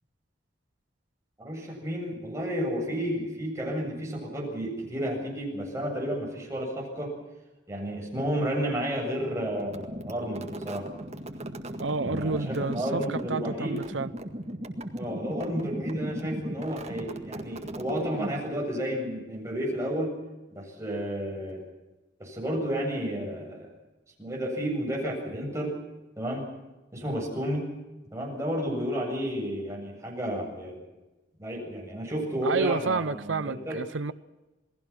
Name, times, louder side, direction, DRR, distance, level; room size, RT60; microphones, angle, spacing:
voice 1, 1.4-7.1 7.7-10.9 12.0-13.8 14.9-20.1 20.5-21.6 22.2-23.7 24.2-25.7 26.2-26.4 26.9-27.6 28.1-30.8 31.4-33.8, equal, 15° right, 7.7 m, -31 dB
sound 1, 9.6-18.6, equal, 35° right, 1.9 m, -37 dB
voice 2, 11.8-14.1 32.4-34.1, right 4 dB, 90° right, 0.8 m, -30 dB
28.5 x 19.5 x 6.0 m
head